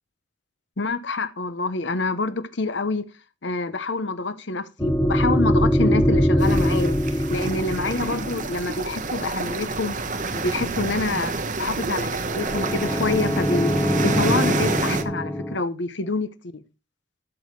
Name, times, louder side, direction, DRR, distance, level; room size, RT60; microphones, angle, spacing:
voice 1, 0.8-3.1 3.4-10.0 10.3-16.3 16.5-16.6, left 3 dB, 60° left, 0.9 m, -27 dB
sound 1, 4.8-9.2 12.2-15.6, equal, 10° left, 0.7 m, -23 dB
sound 2, 6.4-15.0, right 3 dB, 40° right, 1.0 m, -28 dB
12.5 x 6.3 x 4.7 m
head